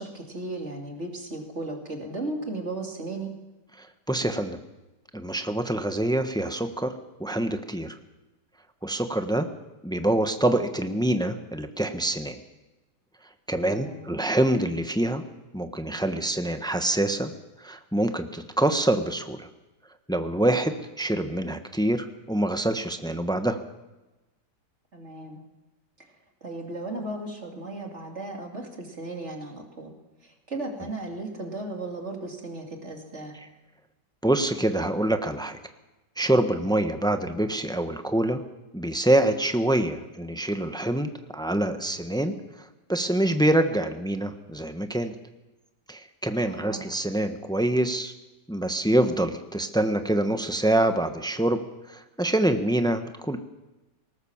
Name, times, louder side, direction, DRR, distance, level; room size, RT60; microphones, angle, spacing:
voice 1, 0.0-3.3 13.5-14.2 24.9-25.4 26.0-26.1 26.4-29.9 30.2-33.4 46.4-46.8, right 2 dB, 40° right, 2 dB, 3.1 m, -36 dB
voice 2, 3.8-4.6 5.1-6.9 7.2-8.0 8.8-9.5 9.8-12.4 13.5-15.2 15.5-17.3 17.6-19.5 20.1-23.6 34.2-35.6 36.2-38.4 38.7-45.1 45.9-48.1 48.5-53.4, right 1 dB, 5° left, 8 dB, 0.9 m, -25 dB
19.5 x 18.5 x 7.3 m, 1.1 s
omnidirectional pair, 1.9 m